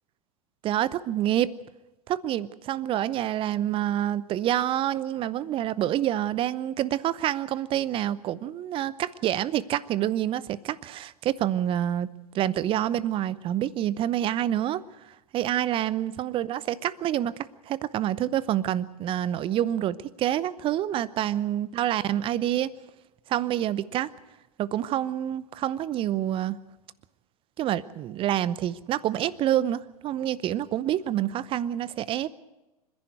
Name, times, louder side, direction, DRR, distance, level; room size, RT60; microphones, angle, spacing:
voice 1, 0.6-1.5 2.1-12.1 12.3-14.8 15.3-17.3 17.7-22.7 23.3-24.1 24.6-26.6 27.6-32.3, right 12 dB, 30° right, 19 dB, 0.7 m, -27 dB
26.0 x 10.5 x 9.3 m, 1.0 s
figure-of-eight pair, 95°, 19 cm